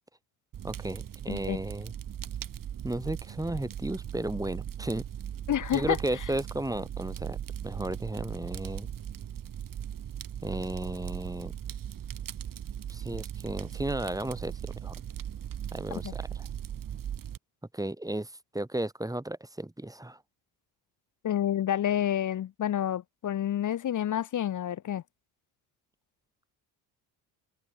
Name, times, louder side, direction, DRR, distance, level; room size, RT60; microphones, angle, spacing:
Fire, 0.5-17.4, right 9 dB, 45° right, 1.8 m, -38 dB
voice 1, 0.6-1.9 2.8-5.0 5.7-7.4 7.6-8.9 10.4-11.5 12.9-15.0 15.7-16.5 17.7-20.2, right 1 dB, 5° right, 3.5 m, -34 dB
voice 2, 1.3-1.6 5.5-6.0 15.9-16.1 21.2-25.0, left 10 dB, 40° left, 0.8 m, -29 dB
cardioid pair, 90°, 46 cm